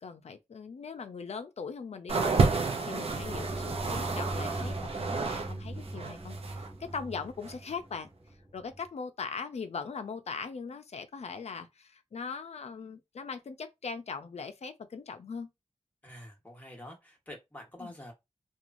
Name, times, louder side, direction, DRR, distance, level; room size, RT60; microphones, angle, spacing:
voice 1, 0.0-8.1 8.5-15.5 17.8-17.9, left 5 dB, 60° left, 0.5 m, -40 dB
sound 1, 2.1-5.5 5.8-6.7 7.4-7.5, right 4 dB, 55° right, 0.6 m, -30 dB
sound 2, 3.1-8.8, right 1 dB, 30° right, 1.1 m, -40 dB
voice 2, 16.0-18.1, left 1 dB, 15° left, 1.0 m, -47 dB
3.0 x 2.4 x 2.5 m
wide cardioid pair, 110°, 12 cm